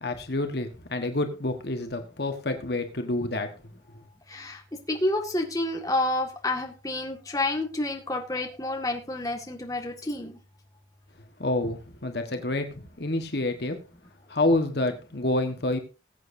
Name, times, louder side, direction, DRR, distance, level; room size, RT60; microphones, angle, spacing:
voice 1, 0.0-3.5 11.4-13.8 14.3-15.8, left 2 dB, 60° left, 6 dB, 1.4 m, -28 dB
voice 2, 4.3-4.6 4.9-10.4, left 2 dB, 20° left, 2 dB, 1.9 m, -29 dB
20.0 x 8.3 x 2.7 m, 0.31 s
head